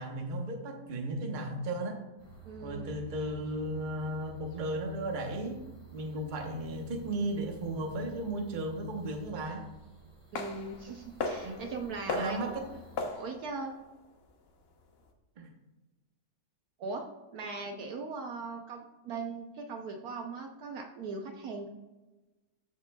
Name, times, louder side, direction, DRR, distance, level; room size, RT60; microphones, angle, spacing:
voice 1, 0.0-2.0 2.6-5.6 5.9-9.7 10.9-11.0 11.4-11.6 12.1-12.7 15.4-15.5, right 1 dB, 35° right, 3 dB, 0.9 m, -35 dB
sound 1, 2.2-13.0, right 7 dB, 30° left, 2.6 m, -52 dB
voice 2, 2.4-2.9 10.3-12.5 13.2-13.7 16.8-17.0 17.3-21.7, right 4 dB, 70° right, 3 dB, 1.1 m, -39 dB
sound 2, 10.3-15.1, left 3 dB, 50° left, 0.8 m, -39 dB
14.0 x 5.3 x 2.3 m, 1.1 s
omnidirectional pair, 1.8 m